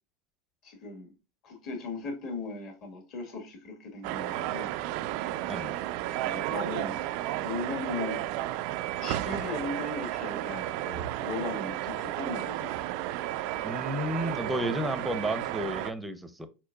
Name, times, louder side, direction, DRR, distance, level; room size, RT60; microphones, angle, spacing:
voice 1, 0.6-1.1 1.4-4.7 6.2-7.0 7.4-8.2 9.0-12.7, left 3 dB, 50° left, 2.0 m, -38 dB
sound 1, 4.0-15.9, right 14 dB, 60° right, 0.3 m, -33 dB
voice 2, 13.6-16.5, equal, 5° right, 0.6 m, -32 dB
4.5 x 4.4 x 2.2 m
supercardioid pair, 110°, 0 cm